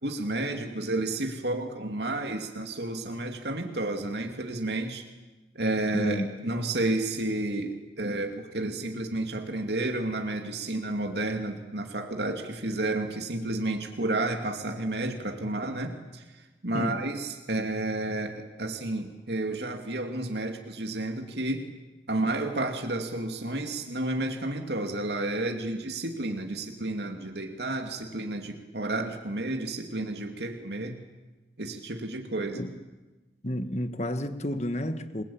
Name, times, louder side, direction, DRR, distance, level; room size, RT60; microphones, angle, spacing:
voice 1, 0.0-5.0 5.5-16.2 16.6-21.6 22.1-31.0 31.6-32.6, right 2 dB, 70° right, 4 dB, 2.7 m, -31 dB
voice 2, 5.9-6.3 16.7-17.0 32.5-32.7 33.4-35.2, left 1 dB, 40° left, 10 dB, 1.6 m, -31 dB
28.0 x 22.0 x 8.8 m, 1.2 s
head